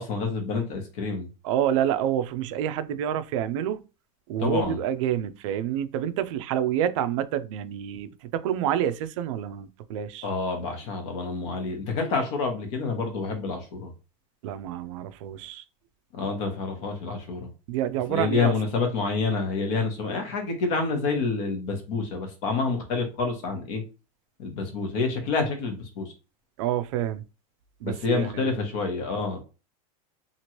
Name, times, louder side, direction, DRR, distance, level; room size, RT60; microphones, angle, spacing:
voice 1, 0.0-1.3 4.4-4.8 10.2-13.9 16.1-17.5 18.1-23.8 24.4-26.1 27.8-29.4, left 4 dB, 50° left, 1.0 m, -28 dB
voice 2, 1.4-3.8 4.3-10.3 14.4-15.6 17.7-18.5 26.6-27.2 27.8-28.5, right 10 dB, 55° right, 0.4 m, -28 dB
3.0 x 2.5 x 2.9 m
supercardioid pair, 170°, 19 cm